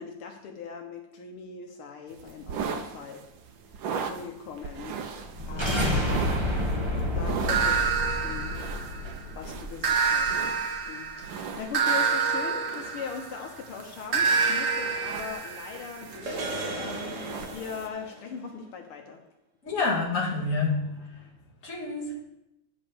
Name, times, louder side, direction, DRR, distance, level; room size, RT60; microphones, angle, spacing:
voice 1, 0.0-3.7 4.1-5.0 5.4-6.3 7.1-8.6 9.0-10.3 10.9-19.2, left 6 dB, 80° left, 3 dB, 1.9 m, -40 dB
sound 1, 2.1-17.9, right 6 dB, 65° right, 1.4 m, -39 dB
sound 2, 5.2-10.3, left 1 dB, 15° right, 1.1 m, -29 dB
sound 3, 7.5-9.2 9.8-13.5 14.1-17.8, right 5 dB, 40° right, 1.6 m, -28 dB
voice 2, 19.6-21.2 21.6-22.2, left 3 dB, 35° left, -2 dB, 2.2 m, -28 dB
9.8 x 5.5 x 7.1 m, 0.90 s
omnidirectional pair, 2.4 m